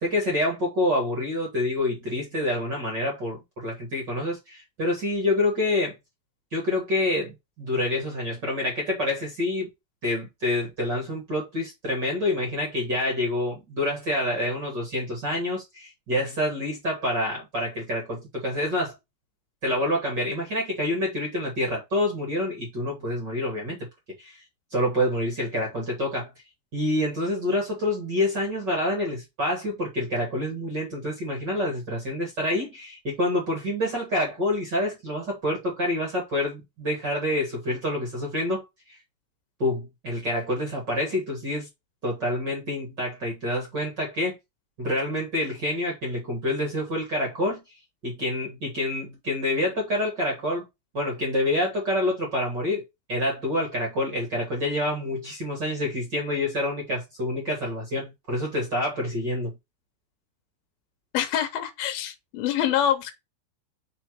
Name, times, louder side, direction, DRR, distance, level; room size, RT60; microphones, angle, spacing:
voice 1, 0.0-5.9 6.5-9.7 10.0-18.9 19.6-23.8 24.2-24.4 24.7-26.3 26.7-39.0 39.6-41.7 42.0-44.3 44.8-47.6 48.0-50.6 50.9-59.5, left 1 dB, 50° right, 1.3 m, -27 dB
voice 2, 61.1-63.1, left 10 dB, 75° left, 2.4 m, -25 dB
5.9 x 3.9 x 4.6 m
omnidirectional pair, 5.1 m